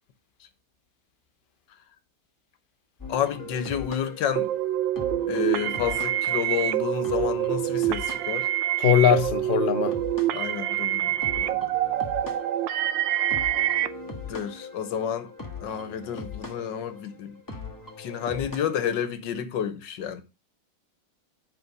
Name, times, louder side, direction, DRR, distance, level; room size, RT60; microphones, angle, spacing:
sound 1, 3.0-19.0, left 3 dB, 10° left, 1.4 m, -40 dB
voice 1, 3.1-4.5 5.3-8.5 10.3-11.7 14.3-15.3 15.6-17.4 18.0-20.2, left 8 dB, 75° left, 1.6 m, -30 dB
sound 2, 4.4-13.9, right 13 dB, 90° right, 1.4 m, -26 dB
voice 2, 8.8-10.0, left 9 dB, 55° left, 0.6 m, -20 dB
8.1 x 5.3 x 5.3 m
omnidirectional pair, 2.0 m